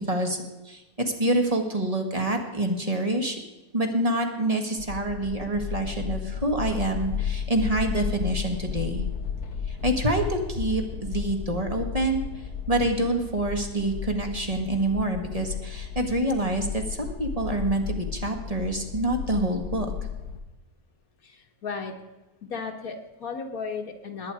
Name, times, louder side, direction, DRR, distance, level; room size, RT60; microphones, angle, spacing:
voice 1, 0.1-0.4 0.7-3.4 3.7-9.0 9.7-12.2 12.7-19.9, right 1 dB, 25° right, 4 dB, 1.8 m, -26 dB
sound 1, 4.8-20.4, left 7 dB, 90° left, 1.6 m, -34 dB
voice 2, 21.2-21.9 22.4-24.3, left 5 dB, 70° left, 3 dB, 1.7 m, -35 dB
20.0 x 9.2 x 4.8 m, 1.1 s
omnidirectional pair, 1.6 m